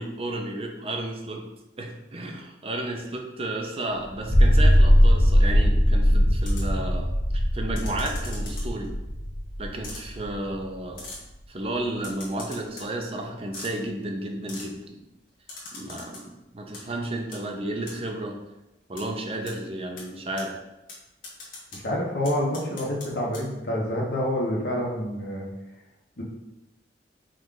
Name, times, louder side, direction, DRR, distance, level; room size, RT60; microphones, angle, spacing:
voice 1, 0.0-1.5 1.8-8.9 9.6-11.1 11.5-15.0 15.7-18.4 18.9-20.6, right 1 dB, 30° right, 2 dB, 0.5 m, -32 dB
sound 1, 4.2-10.6, equal, 5° left, 1.1 m, -20 dB
sound 2, 6.4-6.8 7.8-8.9 9.8-10.0 11.0-11.2 12.0-12.9 13.5-13.7 14.5-14.7 15.5-16.2 16.6-16.8 17.3-17.4 17.9-18.0 19.0-19.1 19.5-19.6 20.0-20.1 20.4-20.5 20.9-21.0 21.2-21.8 22.2-23.1 23.3-23.4, left 3 dB, 50° left, 1.3 m, -40 dB
voice 2, 21.7-25.5 26.2-26.3, equal, 65° left, -3 dB, 1.1 m, -27 dB
5.1 x 2.4 x 3.8 m, 0.97 s
head